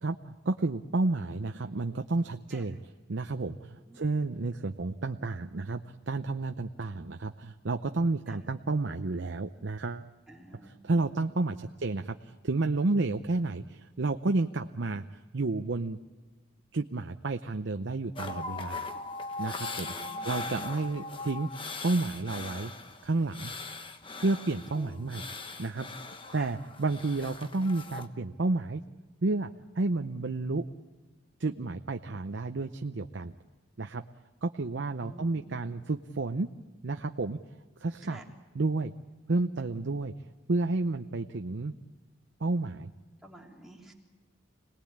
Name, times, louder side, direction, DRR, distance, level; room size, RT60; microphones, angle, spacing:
voice 1, 0.0-10.1 10.6-16.0 16.7-18.9 19.4-19.9 20.2-21.5 21.8-22.7 23.0-23.5 24.2-25.2 25.6-25.9 26.3-28.8 29.2-29.5 29.8-30.7 31.4-33.3 33.8-34.0 34.4-36.5 36.8-37.4 37.8-38.2 38.5-38.9 39.3-40.1 40.5-41.7 42.4-42.9, right 3 dB, 65° right, 6 dB, 0.7 m, -31 dB
voice 2, 10.3-10.8 18.9-19.0 19.8-20.5 24.7-25.4 26.4-26.5 35.0-35.6 38.1-38.2 43.2-43.9, right 1 dB, ahead, -2 dB, 3.3 m, -50 dB
sound 1, 18.2-28.1, left 3 dB, 25° left, 1.1 m, -40 dB
26.5 x 19.0 x 8.7 m, 1.3 s
head